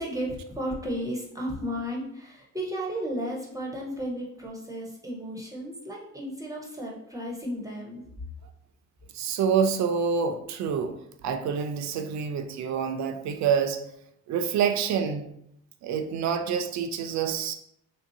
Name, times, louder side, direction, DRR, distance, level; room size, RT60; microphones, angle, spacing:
voice 1, 0.0-8.0, equal, 10° right, -2 dB, 0.7 m, -34 dB
voice 2, 9.1-10.9 11.2-13.8 14.3-15.3 15.8-17.5, right 7 dB, 65° right, 6 dB, 0.5 m, -27 dB
3.3 x 2.7 x 2.6 m, 0.75 s
cardioid pair, 90°, 30 cm